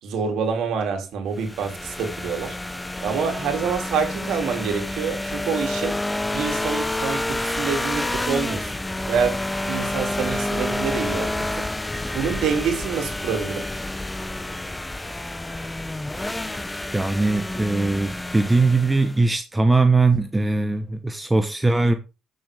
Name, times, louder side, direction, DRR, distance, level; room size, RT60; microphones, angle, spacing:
voice 1, 0.0-8.7 9.1-9.4 9.6-11.8 12.1-13.7, right 6 dB, 80° right, 2.6 m, -27 dB
sound 1, 1.4-19.2, left 1 dB, 10° left, 0.5 m, -29 dB
voice 2, 16.9-21.9, right 3 dB, 15° right, 1.0 m, -20 dB
15.0 x 6.4 x 3.4 m
cardioid pair, 90°, 0 cm